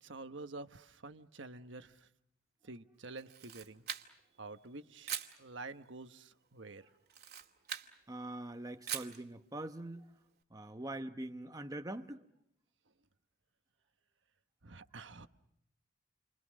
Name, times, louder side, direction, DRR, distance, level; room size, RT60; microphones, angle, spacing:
voice 1, 0.0-2.1 2.6-3.9 4.4-6.9 14.6-15.3, right 3 dB, 75° right, 1.3 m, -49 dB
Camera, 3.2-4.4 5.0-5.4 7.1-7.9 8.9-9.2, right 10 dB, 55° right, 2.1 m, -41 dB
voice 2, 8.1-10.1 10.5-12.2, right 1 dB, 20° right, 1.0 m, -43 dB
29.0 x 25.0 x 6.4 m
head